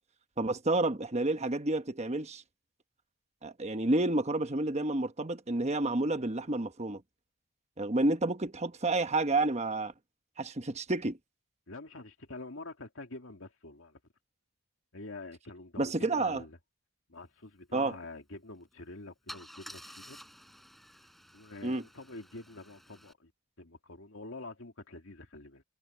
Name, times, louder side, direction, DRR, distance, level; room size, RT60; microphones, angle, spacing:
voice 1, 0.4-2.4 3.4-7.0 7.8-9.9 10.4-11.2 15.8-16.4 17.7-18.0 21.6-21.8, right 2 dB, 30° right, 1.1 m, -30 dB
voice 2, 11.7-14.0 14.9-16.6 17.1-20.2 21.3-23.3 23.6-25.6, left 2 dB, 65° left, 2.6 m, -46 dB
Car / Engine starting / Idling, 18.6-18.7 19.3-23.1, equal, ahead, 6.8 m, -51 dB
head